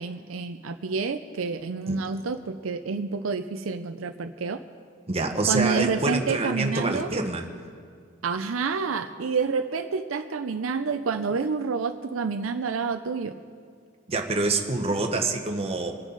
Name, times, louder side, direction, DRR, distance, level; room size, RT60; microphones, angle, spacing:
voice 1, 0.0-4.6 5.5-7.1 8.2-13.3, right 5 dB, 75° right, 8 dB, 0.5 m, -28 dB
voice 2, 5.1-7.4 14.1-16.0, right 3 dB, 30° right, 3 dB, 1.2 m, -26 dB
25.0 x 9.8 x 4.0 m, 2.1 s
head